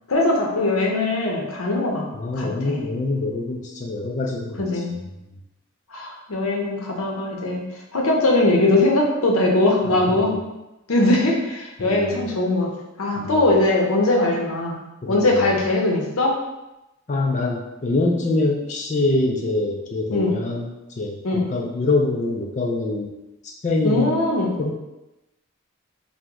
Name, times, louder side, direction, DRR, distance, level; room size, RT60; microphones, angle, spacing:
voice 1, 0.1-2.0 2.3-2.8 4.6-5.0 5.9-7.7 7.9-10.3 10.9-12.7 13.0-14.8 15.1-16.3 20.1-20.4 21.2-21.5 23.8-24.6, left 2 dB, 85° left, -1 dB, 0.6 m, -20 dB
voice 2, 2.1-4.8 9.8-10.3 11.8-12.2 13.2-13.3 15.0-15.4 17.1-23.1 23.4-24.1 24.6-24.7, left 2 dB, 35° left, 0 dB, 0.3 m, -25 dB
2.9 x 2.1 x 3.6 m, 0.96 s
head